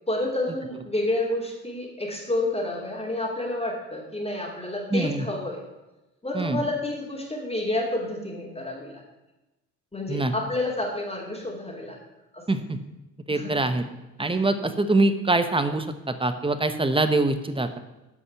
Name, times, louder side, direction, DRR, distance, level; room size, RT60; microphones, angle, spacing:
voice 1, 0.1-5.6 6.2-9.0 9.9-12.0 12.3-12.4 13.3-13.5, left 1 dB, 15° left, -2 dB, 2.8 m, -29 dB
voice 2, 4.9-5.3 6.3-6.6 10.1-10.3 12.5-12.8 13.3-13.8 14.2-17.8, right 2 dB, 15° right, 9 dB, 1.0 m, -24 dB
9.6 x 5.4 x 6.9 m, 1.0 s
hypercardioid pair, 55°, 41 cm